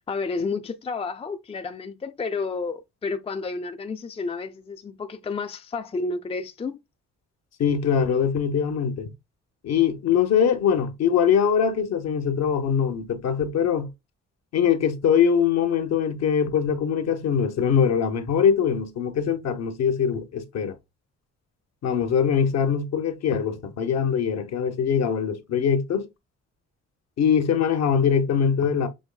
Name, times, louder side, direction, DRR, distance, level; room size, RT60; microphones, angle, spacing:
voice 1, 0.0-6.8, left 4 dB, 20° left, 0.5 m, -31 dB
voice 2, 7.6-9.1 9.6-13.9 14.5-20.8 21.8-26.1 27.2-28.9, left 7 dB, 60° left, 0.9 m, -22 dB
6.3 x 3.1 x 2.2 m
cardioid pair, 90°, 30 cm